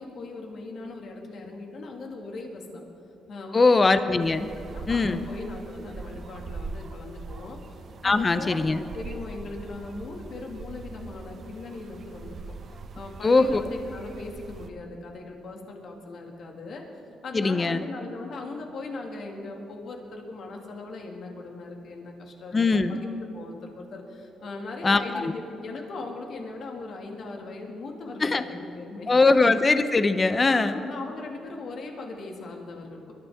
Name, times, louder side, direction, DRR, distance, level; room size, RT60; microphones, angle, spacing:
voice 1, 0.0-2.8 3.3-3.9 4.6-7.6 8.0-16.8 17.2-29.1 30.5-33.1, left 3 dB, 60° left, 1 dB, 2.1 m, -39 dB
voice 2, 3.5-4.5 4.9-5.3 8.0-8.8 13.2-13.6 17.3-17.8 22.5-23.0 24.8-25.3 28.2-28.4 29.1-30.8, left 3 dB, 30° left, 11 dB, 0.7 m, -21 dB
sound 1, 4.2-14.7, right 4 dB, 50° right, 0.9 m, -42 dB
22.5 x 12.5 x 3.6 m, 2.7 s
cardioid pair, 90°, 0 cm